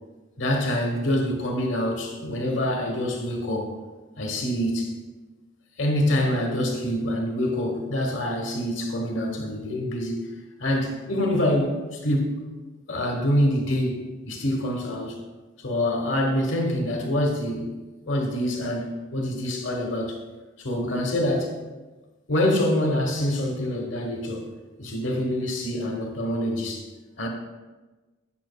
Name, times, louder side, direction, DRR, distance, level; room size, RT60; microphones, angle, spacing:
voice 1, 0.4-3.8 4.2-5.0 5.8-10.3 10.6-12.4 12.9-14.0 14.2-15.1 15.6-17.7 18.1-20.2 20.6-21.5 22.3-24.5 24.8-26.9 27.2-27.3, left 1 dB, 60° left, 2 dB, 1.1 m, -25 dB
8.7 x 5.8 x 2.2 m, 1.2 s
head